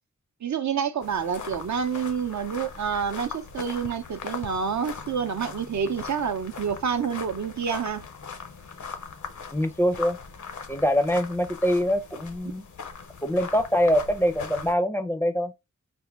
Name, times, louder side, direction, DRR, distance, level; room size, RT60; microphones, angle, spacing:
voice 1, 0.4-8.1, right 7 dB, 65° right, 0.5 m, -28 dB
sound 1, 1.0-14.8, left 5 dB, 70° left, 0.7 m, -40 dB
voice 2, 9.5-10.2 10.7-12.6 13.2-15.5, equal, 10° left, 0.4 m, -24 dB
3.4 x 2.1 x 3.4 m
wide cardioid pair, 60°, 31 cm